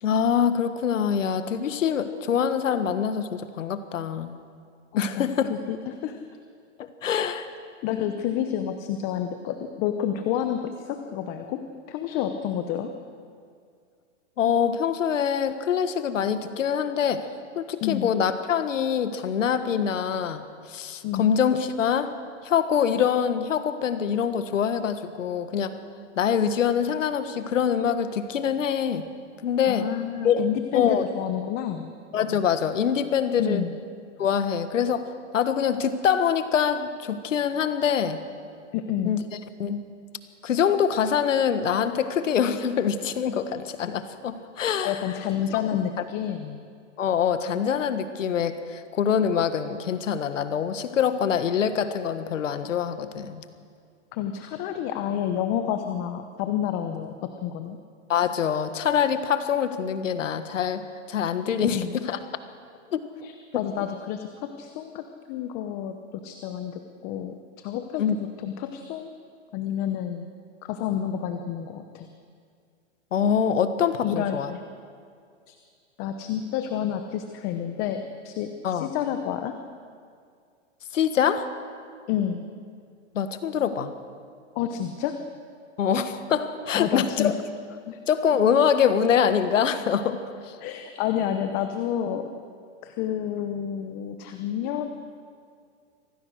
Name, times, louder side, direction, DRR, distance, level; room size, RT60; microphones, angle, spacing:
voice 1, 0.0-4.4 5.0-5.5 6.8-7.5 14.4-17.3 17.5-22.1 22.4-25.8 26.2-29.1 29.4-29.9 30.2-30.5 30.7-31.1 32.1-33.6 34.2-38.2 39.0-39.2 39.6-39.8 40.4-45.0 47.0-53.4 58.1-62.2 62.9-63.0 63.5-63.6 68.0-68.2 73.1-74.5 78.6-78.9 80.9-81.5 83.1-83.9 85.8-87.4 88.1-90.6, left 8 dB, 90° left, 10 dB, 1.6 m, -24 dB
voice 2, 4.9-6.2 7.2-7.3 7.8-13.0 17.8-18.1 21.0-21.3 29.7-31.9 33.4-33.8 38.7-39.2 44.8-46.6 54.1-57.8 61.7-61.9 63.2-69.1 69.5-70.3 70.6-72.1 74.0-74.6 75.5-75.6 76.0-79.6 82.1-82.4 84.5-85.2 86.7-87.3 87.9-88.0 90.6-92.4 92.8-94.9, left 9 dB, 25° left, 7 dB, 0.9 m, -29 dB
25.5 x 18.0 x 6.4 m, 2.2 s
hypercardioid pair, 155°, 37 cm